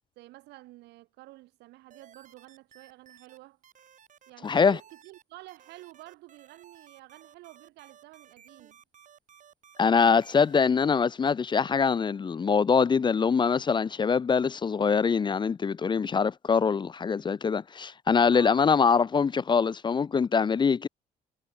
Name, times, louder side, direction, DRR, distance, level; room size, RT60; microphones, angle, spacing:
voice 1, 0.2-3.6 4.3-8.8 18.3-18.7, right 19 dB, 85° right, 6.5 m, -49 dB
sound 1, 1.9-3.4 3.6-5.2 5.5-10.6, right 8 dB, 45° right, 6.1 m, -56 dB
voice 2, 4.4-4.8 9.8-20.9, left 5 dB, 25° left, 0.7 m, -24 dB
cardioid pair, 110°, 17 cm